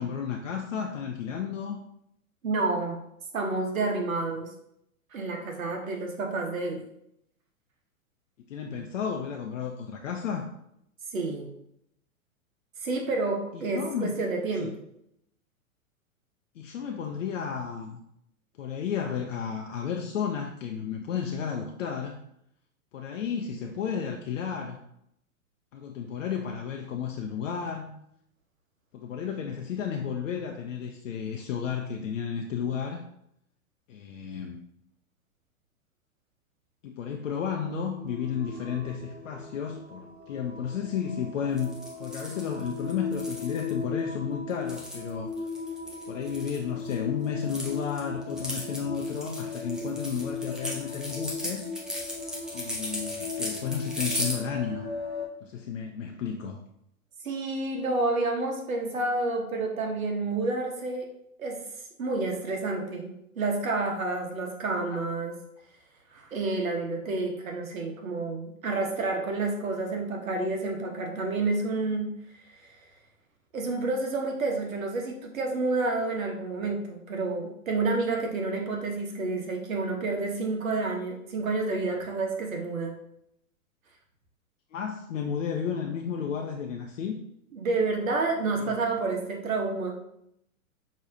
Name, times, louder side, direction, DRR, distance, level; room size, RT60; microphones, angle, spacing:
voice 1, 0.0-1.8 8.5-10.5 13.5-14.1 14.6-14.8 16.6-18.0 18.6-22.2 22.9-24.8 25.7-28.0 28.9-33.0 33.9-34.6 36.8-45.3 46.1-51.6 52.5-54.8 55.4-56.6 64.7-64.9 84.7-87.2 88.6-88.8, left 7 dB, 60° left, 2 dB, 0.7 m, -33 dB
voice 2, 2.4-3.0 3.3-4.5 5.1-6.8 11.1-11.5 12.8-14.7 57.2-61.1 61.4-61.6 62.0-65.3 66.1-72.1 72.6-72.8 73.5-82.9 87.5-89.9, right 3 dB, 70° right, 2 dB, 1.2 m, -29 dB
sound 1, 37.2-55.3, left 4 dB, 20° right, 1.3 m, -38 dB
sound 2, 41.6-43.7 44.5-46.9 47.2-54.3, left 1 dB, ahead, 0.5 m, -36 dB
6.3 x 3.1 x 2.7 m, 0.75 s
figure-of-eight pair, 110°, 42 cm